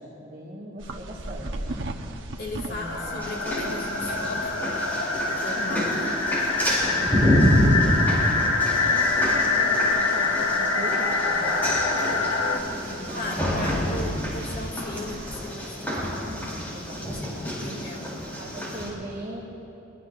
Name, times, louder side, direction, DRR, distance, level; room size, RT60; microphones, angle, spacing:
voice 1, 0.0-1.8 2.6-3.2 5.6-6.2 6.8-12.3 12.9-13.7 15.9-17.5 18.4-19.4, equal, 40° right, -6 dB, 2.0 m, -39 dB
sound 1, 0.8-15.4, right 2 dB, 70° right, 1.0 m, -41 dB
voice 2, 2.4-4.9 5.2-6.1 13.1-16.3 17.0-18.1, left 1 dB, 50° left, -1 dB, 2.8 m, -37 dB
sound 2, 2.9-12.6, left 3 dB, 85° left, 1.5 m, -25 dB
sound 3, 3.2-18.9, equal, 10° left, 4.1 m, -27 dB
23.5 x 22.5 x 2.6 m, 2.9 s
head